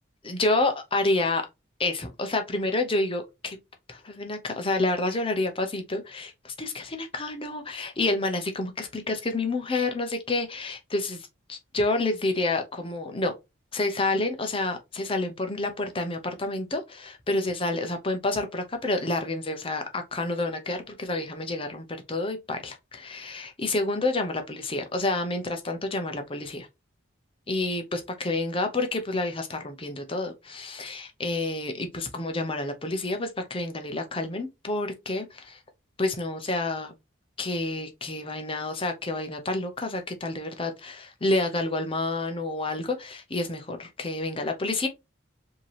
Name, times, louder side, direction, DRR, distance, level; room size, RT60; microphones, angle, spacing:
voice 1, 0.2-1.5 1.8-3.6 3.9-13.3 13.7-26.7 27.5-35.6 36.0-36.9 37.4-44.9, left 2 dB, 25° left, 0.8 m, -29 dB
5.0 x 2.9 x 3.3 m
head